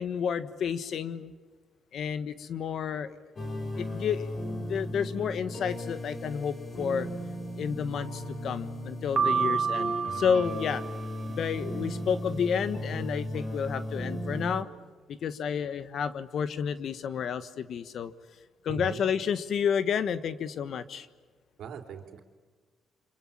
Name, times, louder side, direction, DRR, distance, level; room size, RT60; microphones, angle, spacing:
voice 1, 0.0-1.3 1.9-3.2 3.8-7.1 7.5-10.8 11.3-14.7 15.1-18.1 18.6-21.1, left 7 dB, 65° left, 13 dB, 1.4 m, -31 dB
sound 1, 3.4-14.6, equal, 40° left, 6.1 m, -36 dB
Piano, 9.2-11.3, right 6 dB, 40° right, 1.4 m, -29 dB
voice 2, 18.7-19.1 21.6-22.2, right 6 dB, 75° right, 5 dB, 3.4 m, -39 dB
29.5 x 26.0 x 7.4 m, 1.5 s
cardioid pair, 90°, 0 cm